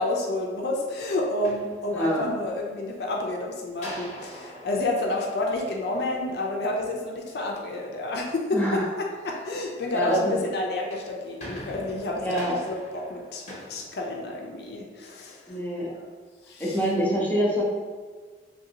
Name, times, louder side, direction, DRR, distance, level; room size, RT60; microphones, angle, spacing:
voice 1, 0.0-8.8 9.2-16.0 16.4-16.8, left 2 dB, 65° left, 0 dB, 0.4 m, -30 dB
sound 1, 1.4-2.4 3.8-6.2 10.6-14.7, left 1 dB, 40° left, 0.8 m, -43 dB
voice 2, 1.9-2.2 8.5-8.8 9.9-10.3 12.2-12.5 15.5-15.9 16.6-17.6, equal, 10° left, -5 dB, 0.5 m, -25 dB
3.2 x 2.6 x 2.7 m, 1.5 s
head